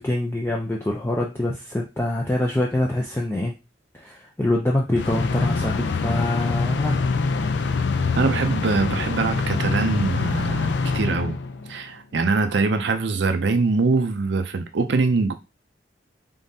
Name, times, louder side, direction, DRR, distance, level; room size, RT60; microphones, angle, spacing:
voice 1, 0.0-3.5 4.0-7.0, left 1 dB, 15° left, 0.5 m, -25 dB
sound 1, 5.0-11.8, left 4 dB, 70° left, 0.4 m, -25 dB
voice 2, 8.2-11.4 11.7-15.3, right 3 dB, 70° right, 0.5 m, -23 dB
3.8 x 3.5 x 2.7 m
head